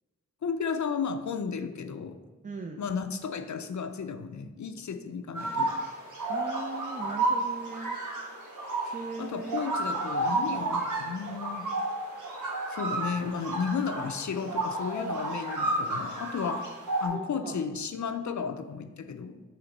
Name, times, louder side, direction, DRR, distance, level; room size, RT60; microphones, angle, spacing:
voice 1, 0.4-2.2 2.8-5.7 8.8-11.7 12.7-16.7 17.0-19.4, left 6 dB, 70° left, 8 dB, 0.5 m, -33 dB
voice 2, 2.4-2.8 6.3-8.0 8.9-9.6 17.1-17.6, right 3 dB, 25° right, 3 dB, 0.4 m, -39 dB
sound 1, 5.3-17.1, right 2 dB, 85° right, 1.6 m, -31 dB
5.8 x 3.2 x 5.3 m, 1.3 s
wide cardioid pair, 60°, 30 cm